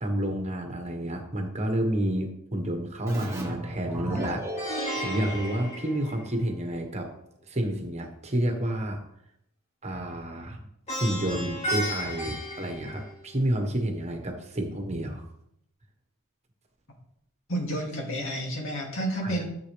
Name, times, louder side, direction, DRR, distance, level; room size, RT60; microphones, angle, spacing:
voice 1, 0.0-7.1 7.5-9.0 9.8-10.6 11.0-15.2 19.2-19.4, right 1 dB, 30° right, 3 dB, 1.4 m, -30 dB
Keyboard (musical), 3.1-6.4, equal, 10° right, 1.4 m, -37 dB
Plucked string instrument, 4.6-6.7 10.9-13.5, equal, 30° left, 2.6 m, -34 dB
voice 2, 17.5-19.4, right 1 dB, 60° left, -1 dB, 2.6 m, -30 dB
13.0 x 7.0 x 3.4 m, 0.75 s
head